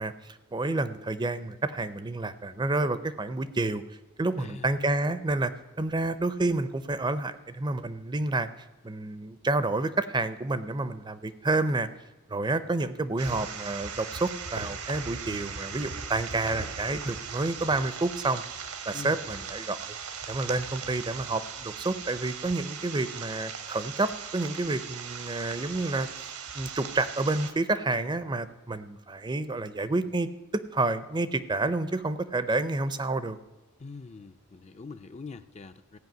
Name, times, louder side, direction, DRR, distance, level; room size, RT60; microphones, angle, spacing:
voice 1, 0.0-3.8 4.2-5.5 5.8-8.5 8.8-11.9 12.3-18.4 18.9-20.0 20.3-33.4, right 2 dB, 20° right, 13 dB, 0.5 m, -29 dB
voice 2, 4.4-4.7 18.9-19.2 33.8-36.0, left 4 dB, 30° left, 10 dB, 0.4 m, -43 dB
sound 1, 13.2-27.5, right 6 dB, 80° right, 1.3 m, -39 dB
15.5 x 5.6 x 9.2 m, 1.1 s
head